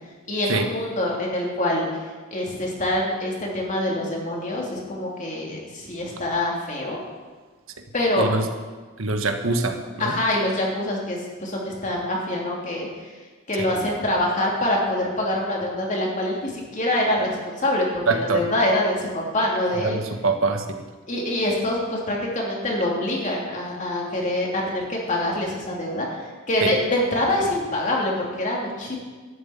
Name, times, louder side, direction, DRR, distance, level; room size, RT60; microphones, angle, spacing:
voice 1, 0.3-1.9 2.3-7.0 7.9-8.3 10.0-12.9 13.5-17.9 18.1-20.0 21.1-26.1 26.5-29.0, left 1 dB, 40° left, -2 dB, 3.0 m, -25 dB
voice 2, 9.0-10.2 13.6-13.7 18.1-18.4 19.7-20.6 26.6-26.7, right 3 dB, 85° right, 6 dB, 1.4 m, -24 dB
12.5 x 7.5 x 8.9 m, 1.4 s
head